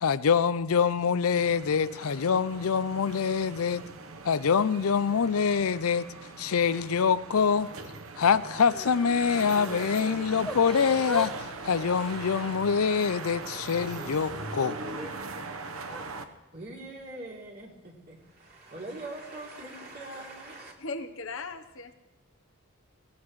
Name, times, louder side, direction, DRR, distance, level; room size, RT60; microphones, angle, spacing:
voice 1, 0.0-3.8 4.2-6.1 6.4-7.7 8.2-11.3 11.6-14.8, left 6 dB, 85° left, 0.5 m, -25 dB
sound 1, 1.3-16.2, right 3 dB, 75° right, 1.1 m, -40 dB
Yell / Crying sobbing, 8.6-9.8 10.4-11.3 11.6-13.0 13.5-15.1 15.8-16.0, equal, ahead, 0.8 m, -41 dB
voice 2, 16.5-20.7, right 2 dB, 45° right, 3.1 m, -42 dB
voice 3, 20.8-21.9, left 3 dB, 65° left, 1.0 m, -37 dB
21.5 x 16.5 x 3.2 m
head